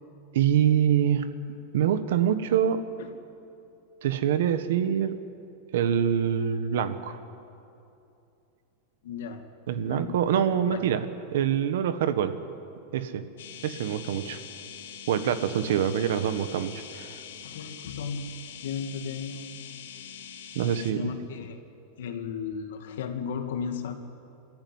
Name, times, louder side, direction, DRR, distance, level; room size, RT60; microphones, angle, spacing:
voice 1, 0.3-1.3 1.7-2.8 4.0-5.2 5.7-7.2 9.7-12.4 12.9-13.2 13.6-14.4 15.1-17.2 20.5-21.1, right 9 dB, 60° right, 11 dB, 1.4 m, -25 dB
voice 2, 9.0-9.5 9.8-10.2 10.7-10.8 17.4-19.7 20.9-21.6 22.0-24.0, left 6 dB, 70° left, 6 dB, 2.2 m, -35 dB
sound 1, 13.4-20.9, left 8 dB, 85° left, 2.9 m, -43 dB
28.5 x 14.0 x 9.6 m, 2.7 s
supercardioid pair, 180°, 0 cm